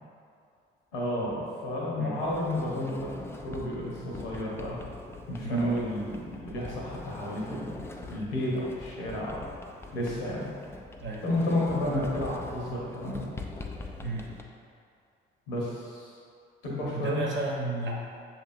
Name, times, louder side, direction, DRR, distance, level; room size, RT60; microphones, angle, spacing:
voice 1, 0.9-3.1 3.4-4.8 5.3-9.4 9.9-10.5 11.2-13.3 15.5-16.1 16.6-17.2, left 1 dB, 75° left, -5 dB, 1.0 m, -31 dB
Sliding door, 2.2-14.4, left 3 dB, 10° left, 0.3 m, -43 dB
voice 2, 16.9-17.9, right 3 dB, 40° right, -3 dB, 1.0 m, -33 dB
6.5 x 2.8 x 2.5 m, 2.3 s
figure-of-eight pair, 45°, 29 cm